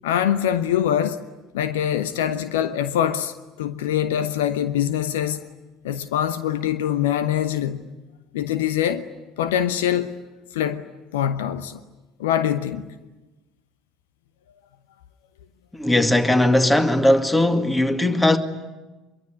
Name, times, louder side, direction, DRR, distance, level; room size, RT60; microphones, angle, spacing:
voice 1, 0.0-1.2 1.5-5.4 5.8-7.8 8.3-9.1 9.4-10.1 10.5-10.8 11.1-11.8 12.2-12.9, left 10 dB, 65° left, 0.9 m, -23 dB
voice 2, 15.7-18.4, left 1 dB, 10° left, 2.1 m, -18 dB
25.0 x 23.0 x 9.7 m
figure-of-eight pair, 60°, 0 cm